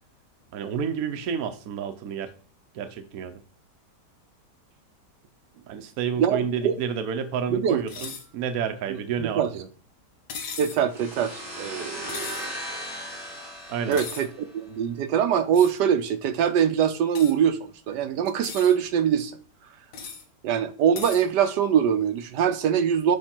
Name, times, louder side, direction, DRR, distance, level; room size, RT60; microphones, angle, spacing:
voice 1, 0.5-2.3 2.7-3.4 5.7-9.7 13.7-14.0, right 7 dB, 65° right, 1.1 m, -30 dB
voice 2, 6.2-6.7 7.5-7.8 9.2-9.5 10.6-12.5 13.9-14.3 14.5-17.6 17.9-19.3 20.4-23.2, right 8 dB, 80° right, 1.3 m, -23 dB
sound 1, 7.9-8.3 10.3-10.8 12.1-12.5 13.9-14.3 15.5-15.8 17.1-17.3 18.3-18.7 19.9-20.2 21.0-21.2, left 5 dB, 80° left, 1.6 m, -37 dB
sound 2, 10.9-14.6, equal, 20° left, 2.6 m, -37 dB
9.4 x 3.3 x 4.4 m
omnidirectional pair, 1.8 m